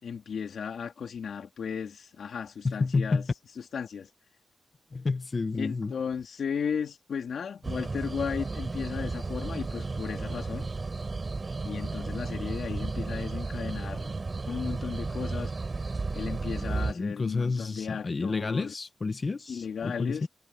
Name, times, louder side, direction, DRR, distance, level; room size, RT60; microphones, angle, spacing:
voice 1, 0.0-3.2 3.7-4.1 5.5-10.7 11.6-14.1 14.4-15.5 16.1-18.8 19.5-20.3, left 6 dB, 80° left, 3.4 m, -35 dB
voice 2, 2.6-3.3 4.9-5.9 16.7-20.3, left 4 dB, 35° left, 0.9 m, -30 dB
sound 1, 7.6-16.9, right 3 dB, 35° right, 6.0 m, -33 dB
wide cardioid pair, 120°, 0 cm